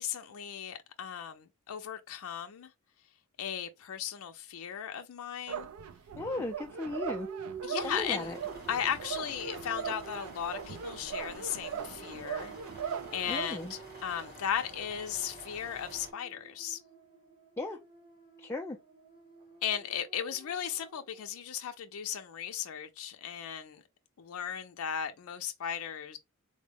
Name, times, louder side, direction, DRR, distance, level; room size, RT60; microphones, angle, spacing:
voice 1, 0.0-2.7 3.4-5.7 7.6-8.3 8.7-12.5 12.8-16.8 19.6-23.8 24.2-26.2, left 8 dB, 85° left, 0.4 m, -36 dB
sound 1, 5.5-13.5, right 7 dB, 85° right, 0.4 m, -40 dB
voice 2, 6.2-7.3 7.8-8.4 13.3-13.7 17.6-17.8 18.4-18.8, left 2 dB, 10° left, 0.3 m, -36 dB
sound 2, 7.1-21.3, right 4 dB, 25° right, 0.8 m, -49 dB
sound 3, 7.8-16.1, right 1 dB, 45° right, 2.0 m, -50 dB
3.7 x 2.1 x 3.3 m
head